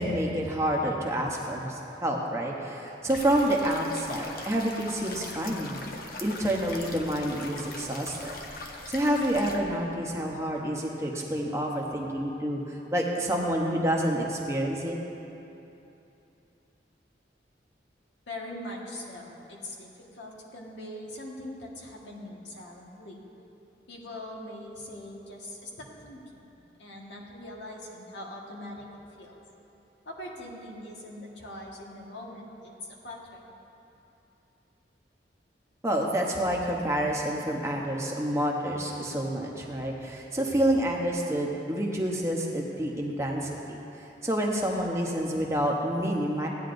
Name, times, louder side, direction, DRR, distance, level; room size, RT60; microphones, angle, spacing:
voice 1, 0.0-5.8 6.2-8.4 8.9-15.0 35.8-43.8 44.2-46.5, right 1 dB, 15° right, -1 dB, 0.9 m, -28 dB
sound 1, 3.1-9.6, left 2 dB, 55° left, 0.8 m, -41 dB
voice 2, 18.3-23.2 23.9-26.5 26.8-28.9 29.2-29.4 30.0-33.5, left 1 dB, 85° left, -2 dB, 1.5 m, -42 dB
16.0 x 9.6 x 2.6 m, 2.9 s
head